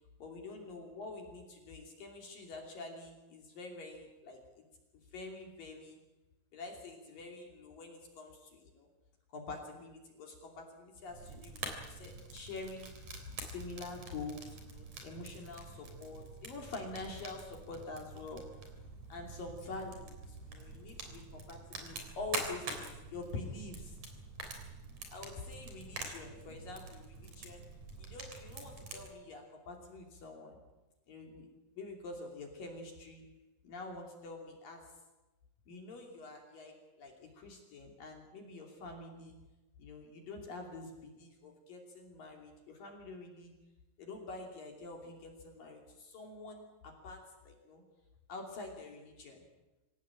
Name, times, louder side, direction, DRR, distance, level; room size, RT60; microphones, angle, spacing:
voice 1, 0.2-4.7 4.9-6.0 6.5-8.9 9.3-12.9 13.4-18.4 19.1-24.0 25.1-27.7 28.0-30.6 31.1-31.5 31.7-33.2 33.6-34.9 35.7-39.4 39.8-43.5 44.0-47.8 48.3-49.4, left 3 dB, 50° left, 2 dB, 4.1 m, -46 dB
Fire, 11.1-29.1, right 3 dB, 40° right, 4.4 m, -46 dB
25.5 x 17.5 x 8.8 m, 1.1 s
omnidirectional pair, 5.8 m